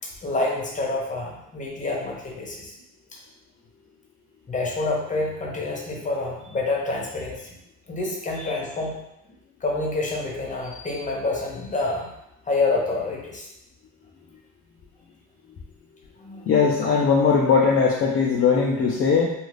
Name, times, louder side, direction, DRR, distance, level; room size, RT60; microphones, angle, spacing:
voice 1, 0.0-2.8 3.1-3.2 4.5-7.5 7.9-9.0 9.6-12.1 12.5-13.5 16.2-16.4, left 2 dB, 25° left, -2 dB, 0.8 m, -27 dB
voice 2, 16.4-19.3, left 5 dB, 45° left, -2 dB, 0.5 m, -20 dB
2.4 x 2.4 x 3.3 m, 0.83 s
cardioid pair, 90°, 30 cm